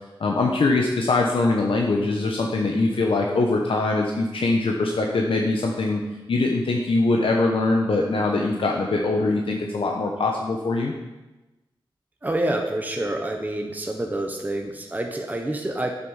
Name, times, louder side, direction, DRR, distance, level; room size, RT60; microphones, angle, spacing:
voice 1, 0.2-6.0 6.3-10.9, left 3 dB, 75° left, 0 dB, 1.0 m, -22 dB
voice 2, 12.2-15.9, right 1 dB, 20° right, 2 dB, 1.1 m, -27 dB
8.3 x 7.9 x 5.7 m, 1.1 s
wide cardioid pair, 75°, 9 cm